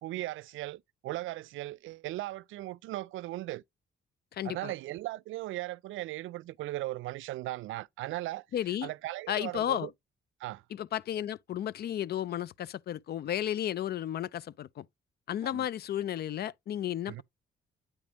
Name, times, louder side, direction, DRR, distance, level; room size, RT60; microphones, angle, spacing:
voice 1, 0.0-3.6 4.4-8.4 8.8-9.9 10.4-10.6 15.4-15.7 17.1-17.2, right 16 dB, 80° right, 0.4 m, -38 dB
voice 2, 4.3-4.7 8.5-8.9 9.3-9.9 10.7-14.8 15.3-17.2, left 11 dB, 55° left, 0.4 m, -33 dB
8.7 x 5.0 x 2.9 m
cardioid pair, 90°, 20 cm